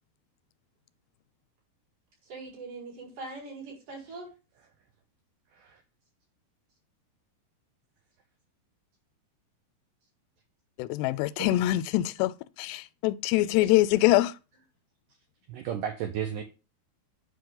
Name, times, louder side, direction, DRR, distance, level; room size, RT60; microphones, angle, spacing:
voice 1, 2.2-4.3 11.4-11.5 13.6-13.7, right 3 dB, 50° right, 6.2 m, -41 dB
voice 2, 10.8-14.3, left 16 dB, 90° left, 2.7 m, -24 dB
voice 3, 15.5-16.4, right 9 dB, 75° right, 1.9 m, -33 dB
9.2 x 6.1 x 3.8 m
omnidirectional pair, 4.7 m